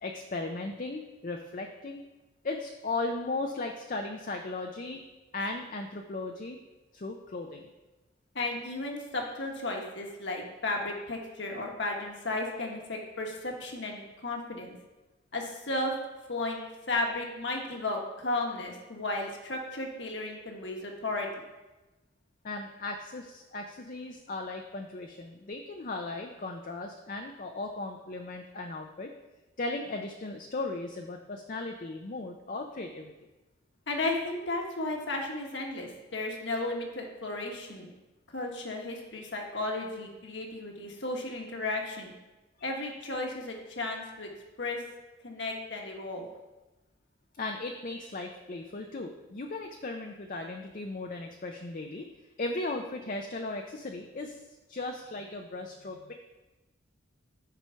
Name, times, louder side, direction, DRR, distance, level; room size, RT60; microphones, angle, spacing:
voice 1, 0.0-2.0 2.4-5.0 5.3-6.6 6.9-7.7 22.4-29.1 29.6-33.1 42.6-42.9 47.4-52.1 52.4-54.4 54.7-56.1, left 2 dB, 40° left, 3 dB, 0.5 m, -37 dB
voice 2, 8.3-14.8 15.3-15.9 16.3-21.3 33.9-37.9 38.3-42.1 42.6-44.3 44.6-44.8 45.2-46.3, left 2 dB, 60° left, 1 dB, 1.4 m, -34 dB
9.1 x 4.9 x 5.7 m, 1.1 s
head